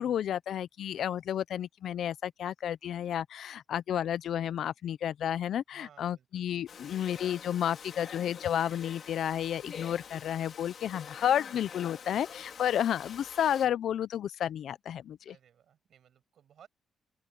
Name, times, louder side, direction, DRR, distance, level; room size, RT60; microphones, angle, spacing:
voice 1, 0.0-15.3, left 10 dB, 65° left, 0.5 m, -31 dB
voice 2, 5.7-6.5 13.1-13.3 15.3-16.7, right 9 dB, 65° right, 6.1 m, -60 dB
Domestic sounds home sounds, 6.7-13.7, left 7 dB, 50° left, 3.6 m, -46 dB
open air
cardioid pair, 130°, 0 cm